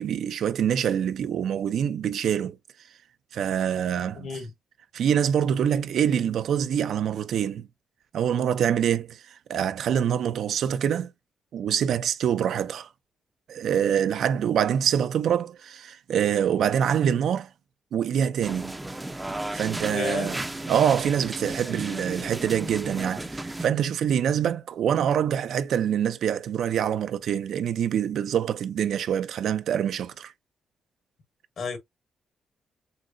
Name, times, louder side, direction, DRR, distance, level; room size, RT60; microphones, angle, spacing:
voice 1, 0.0-2.6 3.3-4.3 4.9-7.7 8.1-11.1 11.5-12.9 13.5-17.5 17.9-18.7 19.5-20.4 20.7-30.3, right 9 dB, 75° right, 0.5 m, -25 dB
voice 2, 4.2-4.5 19.9-20.3 31.6-31.8, left 5 dB, 60° left, 1.7 m, -31 dB
sound 1, 18.4-23.7, right 1 dB, 10° right, 0.5 m, -34 dB
6.5 x 2.2 x 2.5 m
cardioid pair, 110°, 0 cm